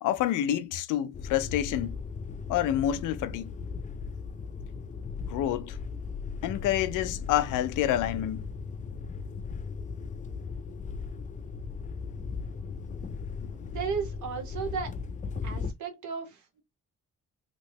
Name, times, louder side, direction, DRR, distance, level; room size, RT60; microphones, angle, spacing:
voice 1, 0.0-2.0 2.5-3.5 5.3-5.8 6.4-8.4 13.4-13.6, left 12 dB, 85° left, 0.5 m, -28 dB
sound 1, 1.1-15.7, left 5 dB, 25° left, 0.4 m, -37 dB
voice 2, 13.7-14.9 15.4-16.6, right 6 dB, 75° right, 1.1 m, -34 dB
3.0 x 2.9 x 2.7 m
cardioid pair, 90°, 30 cm